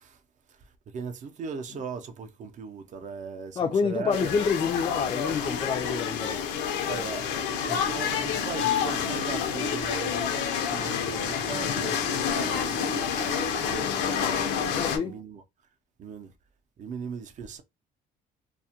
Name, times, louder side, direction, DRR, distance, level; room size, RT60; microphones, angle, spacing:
voice 1, 0.9-4.3 6.9-7.2 7.6-15.4 16.0-16.3 16.8-17.6, right 5 dB, 45° right, 0.5 m, -38 dB
voice 2, 3.6-6.4 14.7-15.2, left 5 dB, 30° left, 0.3 m, -28 dB
sound 1, 4.1-15.0, left 7 dB, 90° left, 0.6 m, -28 dB
2.3 x 2.1 x 2.8 m
cardioid pair, 110°, 17 cm